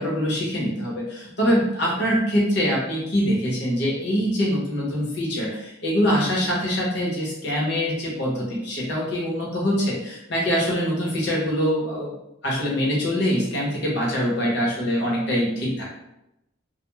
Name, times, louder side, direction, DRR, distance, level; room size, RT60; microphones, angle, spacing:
voice 1, 0.0-12.1 12.4-15.8, equal, 60° left, -4 dB, 0.9 m, -24 dB
2.3 x 2.1 x 3.0 m, 0.86 s
head